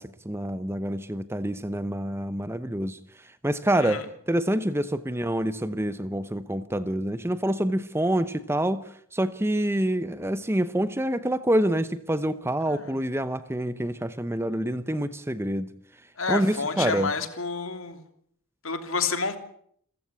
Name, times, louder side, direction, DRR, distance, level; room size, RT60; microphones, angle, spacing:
voice 1, 0.0-8.8 9.1-15.7 16.3-17.1, right 1 dB, 10° right, 13 dB, 0.9 m, -27 dB
voice 2, 16.2-18.0 18.6-19.4, left 4 dB, 60° left, 8 dB, 3.1 m, -29 dB
28.5 x 15.0 x 8.3 m, 0.66 s
head